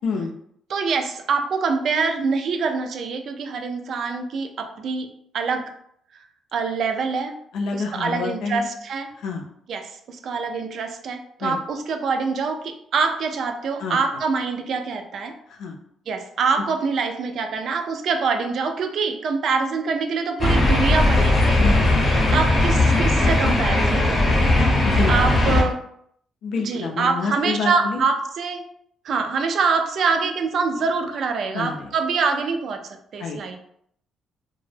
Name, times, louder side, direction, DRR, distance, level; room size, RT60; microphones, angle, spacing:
voice 1, 0.7-5.1 5.3-5.6 6.5-7.3 7.7-9.1 9.7-15.3 16.1-21.6 22.3-24.5 25.1-25.8 26.6-28.6 29.0-33.6, right 4 dB, 65° right, 6 dB, 0.3 m, -25 dB
voice 2, 7.5-8.7 9.2-9.4 11.4-11.6 13.8-14.0 15.6-15.7 21.6-22.3 24.8-25.2 25.5-25.6 26.4-28.0 31.5-31.9 33.2-33.6, left 4 dB, 80° left, 1 dB, 0.4 m, -28 dB
sound 1, 20.4-25.6, left 2 dB, 40° left, 0.7 m, -18 dB
2.1 x 2.0 x 3.1 m, 0.69 s
cardioid pair, 90°, 0 cm